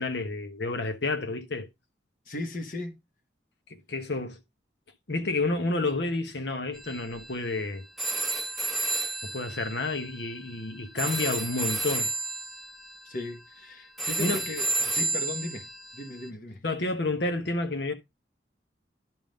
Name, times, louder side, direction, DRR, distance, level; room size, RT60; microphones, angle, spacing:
voice 1, 0.0-1.7 3.7-4.4 5.1-7.8 9.2-12.1 14.2-14.4 16.6-17.9, left 2 dB, 75° left, 1.1 m, -30 dB
voice 2, 2.3-3.0 13.0-15.7 15.9-16.6, left 1 dB, 50° left, 1.1 m, -37 dB
sound 1, 6.7-16.3, right 2 dB, ahead, 0.6 m, -32 dB
11.0 x 3.8 x 5.1 m
head